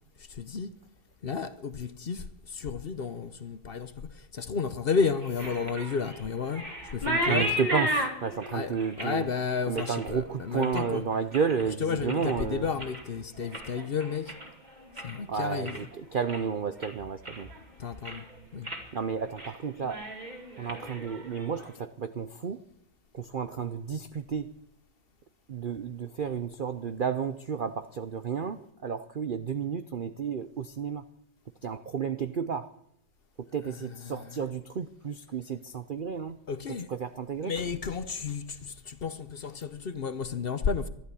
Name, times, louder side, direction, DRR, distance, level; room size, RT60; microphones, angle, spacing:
voice 1, 0.4-0.7 1.2-2.2 2.5-3.9 4.3-6.6 6.9-7.5 8.5-8.7 9.0-11.0 11.8-14.3 15.0-15.8 17.8-18.2 18.5-18.7 34.1-34.2 36.5-36.9 37.4-40.9, left 5 dB, 50° left, 0.8 m, -32 dB
sound 1, 5.0-11.6 12.0-12.5 12.7-15.2 15.5-16.0 16.3-16.4 16.8-17.6 17.9-18.3 18.6-18.9 19.2-19.5 19.8-21.7, equal, 25° right, 2.5 m, -34 dB
voice 2, 7.0-9.3 9.7-12.7 15.3-17.5 18.9-20.1 20.6-22.6 23.1-24.5 25.5-31.0 31.6-32.7 33.4-36.4 36.7-37.5, right 6 dB, 70° right, 0.4 m, -32 dB
14.0 x 11.5 x 8.4 m
omnidirectional pair, 1.8 m